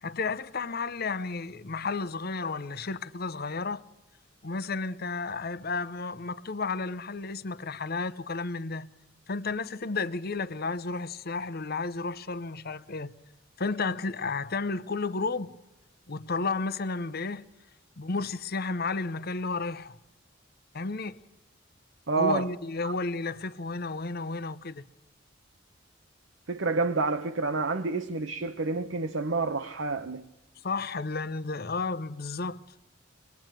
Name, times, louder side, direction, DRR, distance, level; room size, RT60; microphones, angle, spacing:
voice 1, 0.0-3.8 4.4-8.9 9.3-13.1 13.6-15.6 16.1-17.5 18.0-20.0 20.7-21.2 22.2-24.8 30.6-32.6, left 3 dB, 50° left, 0.9 m, -32 dB
voice 2, 22.1-22.5 22.8-22.9 26.5-30.3, right 3 dB, 70° right, 1.0 m, -28 dB
25.5 x 20.5 x 9.1 m
head